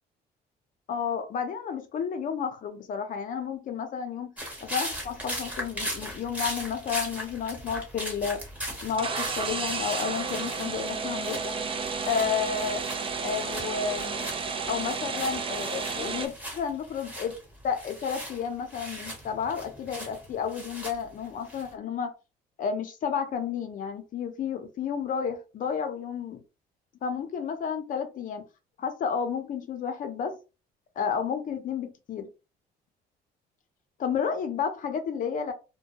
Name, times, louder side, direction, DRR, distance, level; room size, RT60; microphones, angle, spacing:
voice 1, 0.9-4.3 4.6-8.4 8.8-11.5 12.1-12.8 13.2-14.3 14.7-17.4 17.6-22.1 22.6-26.4 27.0-28.5 28.8-30.4 31.0-32.3 34.0-35.5, left 7 dB, 50° left, 6 dB, 0.7 m, -31 dB
sound 1, 4.4-11.5 11.8-21.7, equal, 10° right, 1.0 m, -39 dB
sound 2, 8.9-16.3, right 5 dB, 30° right, 0.5 m, -32 dB
2.2 x 2.2 x 2.8 m, 0.30 s
cardioid pair, 110°, 17 cm